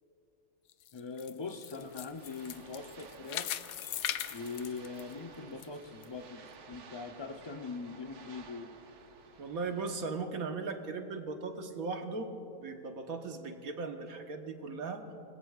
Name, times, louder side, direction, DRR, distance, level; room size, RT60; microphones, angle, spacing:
sound 1, 0.7-5.7 6.0-6.1 6.7-6.8, left 11 dB, 75° left, 1.0 m, -39 dB
voice 1, 0.9-3.5 4.3-6.4 6.7-8.7, left 4 dB, 30° left, 6 dB, 0.4 m, -42 dB
sound 2, 1.7-9.9, right 5 dB, 85° right, 1.5 m, -54 dB
voice 2, 9.4-15.0, right 4 dB, 70° right, 5 dB, 1.6 m, -38 dB
27.0 x 20.5 x 2.4 m, 2.7 s
omnidirectional pair, 1.6 m